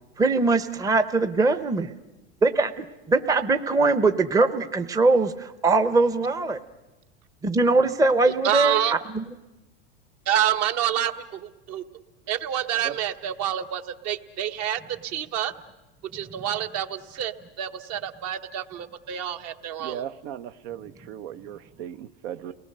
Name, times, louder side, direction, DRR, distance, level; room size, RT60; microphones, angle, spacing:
voice 1, 0.2-1.9 2.4-6.6 7.4-8.8 9.1-9.2, right 3 dB, 10° right, 10 dB, 0.7 m, -21 dB
voice 2, 8.4-8.9 10.3-11.8 12.3-15.5 16.1-20.0, right 11 dB, 50° right, 8 dB, 1.2 m, -28 dB
voice 3, 19.8-22.5, right 10 dB, 70° right, 11 dB, 0.9 m, -37 dB
29.5 x 19.0 x 6.6 m, 1.1 s
supercardioid pair, 120°, 33 cm